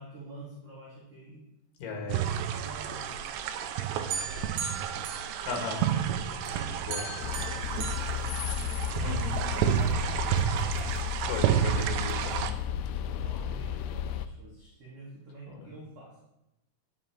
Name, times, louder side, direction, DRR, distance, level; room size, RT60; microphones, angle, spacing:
voice 1, 0.0-1.4 1.9-3.3 3.7-5.1 6.7-8.7 9.4-11.0 13.0-16.2, right 2 dB, 40° right, -6 dB, 2.9 m, -48 dB
voice 2, 1.8-2.2 5.4-5.8 6.8-7.1 9.0-9.4 11.3-12.6 15.5-15.7, left 4 dB, 60° left, 2 dB, 3.1 m, -36 dB
sound 1, 2.1-12.5, right 9 dB, 85° right, 2.8 m, -30 dB
sound 2, 4.1-6.0 6.5-9.0, right 5 dB, 70° right, 3.3 m, -39 dB
sound 3, 7.2-14.3, left 9 dB, 85° left, 2.2 m, -33 dB
10.5 x 7.3 x 4.5 m, 0.90 s
omnidirectional pair, 4.8 m